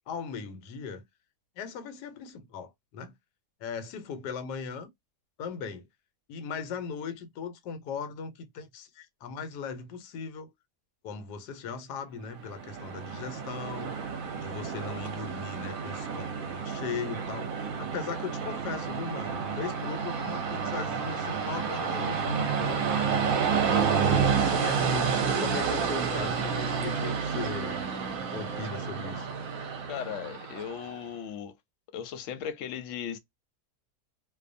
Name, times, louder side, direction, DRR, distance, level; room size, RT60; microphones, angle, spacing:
voice 1, 0.1-1.0 1.6-3.1 3.6-4.9 5.4-5.9 6.3-10.5 11.0-13.9 14.3-23.8 24.5-27.9 28.3-29.3, left 6 dB, 90° left, 1.2 m, -38 dB
Train, 12.4-31.0, right 6 dB, 65° right, 0.9 m, -30 dB
voice 2, 29.9-31.5 31.9-33.2, left 8 dB, 65° left, 0.8 m, -37 dB
2.6 x 2.1 x 2.5 m
omnidirectional pair, 1.7 m